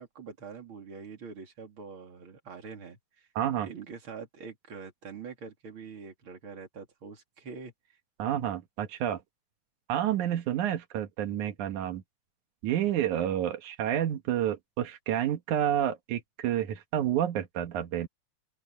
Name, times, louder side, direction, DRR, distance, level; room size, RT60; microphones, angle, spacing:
voice 1, 0.0-3.3 3.6-8.0, right 5 dB, 45° right, 3.7 m, -44 dB
voice 2, 3.4-3.7 8.2-9.2 9.9-12.0 12.6-18.1, right 10 dB, 90° right, 2.8 m, -29 dB
open air
omnidirectional pair, 3.3 m